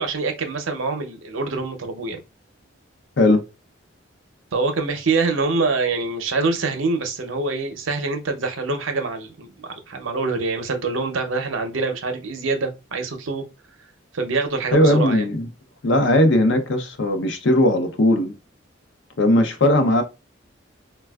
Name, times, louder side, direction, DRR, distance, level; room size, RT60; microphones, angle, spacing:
voice 1, 0.0-2.2 4.5-13.4 14.1-15.3, right 3 dB, 80° right, 0.6 m, -25 dB
voice 2, 14.7-15.5 15.8-18.3 19.2-20.0, left 1 dB, 65° left, 0.6 m, -18 dB
4.1 x 2.2 x 2.2 m
head